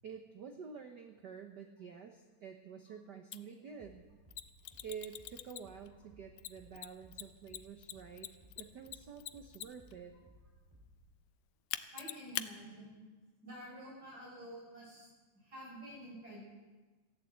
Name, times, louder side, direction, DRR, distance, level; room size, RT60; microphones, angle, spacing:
voice 1, 0.0-4.0 4.8-8.3 8.6-10.2, right 6 dB, 90° right, 5 dB, 0.9 m, -49 dB
Mechanisms, 3.3-3.4 4.3-5.9 6.4-9.9 11.7-12.5, left 15 dB, 85° left, 2.0 m, -42 dB
sound 1, 3.8-11.2, left 1 dB, 10° right, 2.0 m, -62 dB
voice 2, 11.9-13.0 13.4-15.1 15.3-16.4, equal, 30° right, -5 dB, 7.8 m, -49 dB
15.0 x 11.0 x 8.0 m, 1.2 s
omnidirectional pair, 3.3 m